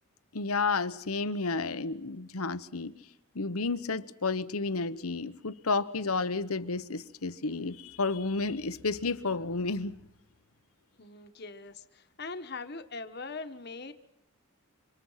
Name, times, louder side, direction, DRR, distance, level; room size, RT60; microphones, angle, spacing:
voice 1, 0.3-2.9 3.3-10.0, left 3 dB, 85° left, 1.1 m, -31 dB
voice 2, 11.0-13.9, left 3 dB, 50° left, 1.4 m, -41 dB
28.0 x 26.5 x 5.8 m
head